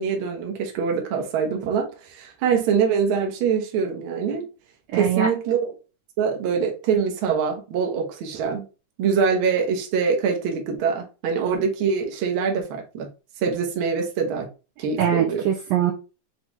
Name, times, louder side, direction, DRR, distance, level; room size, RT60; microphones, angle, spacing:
voice 1, 0.0-4.5 4.9-5.6 6.2-8.6 9.0-13.1 13.4-14.5 14.8-15.4, right 6 dB, 70° right, 1.2 m, -24 dB
voice 2, 4.9-5.3 15.0-15.9, right 9 dB, 85° right, 1.5 m, -22 dB
5.7 x 2.3 x 3.1 m
omnidirectional pair, 3.7 m